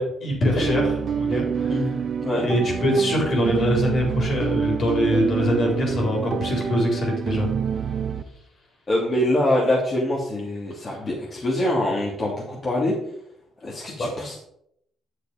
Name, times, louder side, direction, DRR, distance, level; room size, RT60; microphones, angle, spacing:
voice 1, 0.0-1.8 2.3-7.5 14.0-14.1, equal, 55° left, -1 dB, 4.4 m, -23 dB
sound 1, 0.6-8.2, right 7 dB, 50° right, 0.8 m, -27 dB
voice 2, 8.9-12.9 13.6-14.4, left 1 dB, 35° left, -5 dB, 2.8 m, -24 dB
9.3 x 6.5 x 5.2 m, 0.74 s
cardioid pair, 90°, 0 cm